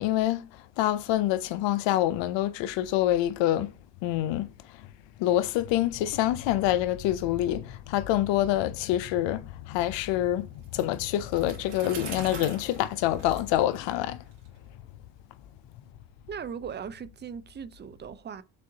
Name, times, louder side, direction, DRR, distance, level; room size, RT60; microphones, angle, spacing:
voice 1, 0.0-3.7 4.0-4.5 4.8-4.9 5.2-14.2, left 13 dB, 85° left, 0.5 m, -26 dB
Bicycle, 10.6-14.5, right 5 dB, 75° right, 1.9 m, -43 dB
voice 2, 16.3-18.4, right 7 dB, 25° right, 0.4 m, -38 dB
6.4 x 2.5 x 2.7 m
supercardioid pair, 70°, 43 cm